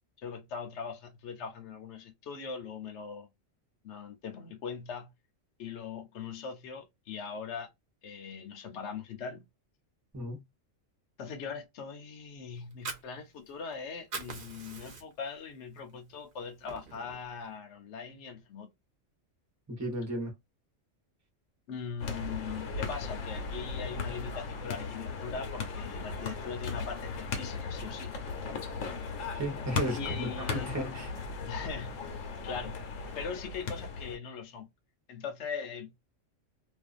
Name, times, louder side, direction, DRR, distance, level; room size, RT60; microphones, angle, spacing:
voice 1, 0.2-3.3 3.8-5.1 5.6-7.7 8.0-9.5 11.2-18.7 21.7-28.1 29.9-30.8 31.4-32.0 32.4-32.9 33.1-34.7 35.1-36.1, left 6 dB, 65° left, 1.0 m, -41 dB
Fire, 12.6-13.7 14.0-15.3 15.8-15.9 16.3-17.3, right 4 dB, 45° right, 0.9 m, -42 dB
voice 2, 19.7-20.3 29.3-31.1, right 1 dB, 15° right, 0.8 m, -34 dB
sound 1, 22.0-34.2, left 4 dB, 85° left, 1.2 m, -37 dB
2.5 x 2.4 x 2.4 m
omnidirectional pair, 1.3 m